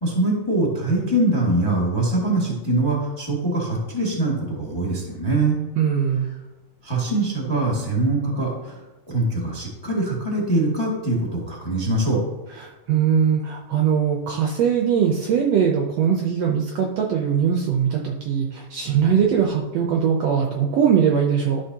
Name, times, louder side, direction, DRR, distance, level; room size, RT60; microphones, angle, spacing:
voice 1, 0.0-5.6 6.8-8.7 9.1-12.2, right 2 dB, 15° left, -3 dB, 1.0 m, -23 dB
voice 2, 5.8-6.3 12.5-21.6, right 7 dB, 75° right, 0 dB, 1.6 m, -21 dB
12.5 x 5.7 x 2.8 m, 1.1 s
omnidirectional pair, 3.6 m